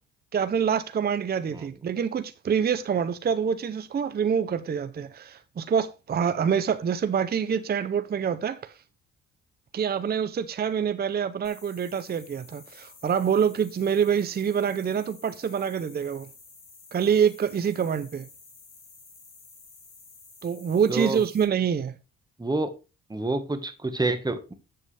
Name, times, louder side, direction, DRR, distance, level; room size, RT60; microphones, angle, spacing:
voice 1, 0.3-8.7 9.7-16.3 16.9-18.3 20.4-21.9, right 7 dB, 30° right, 0.6 m, -26 dB
sound 1, 11.4-21.4, left 4 dB, 45° left, 4.1 m, -51 dB
voice 2, 22.4-22.7 23.1-24.5, right 2 dB, 15° right, 1.4 m, -28 dB
7.9 x 7.7 x 3.4 m
cardioid pair, 90°, 30 cm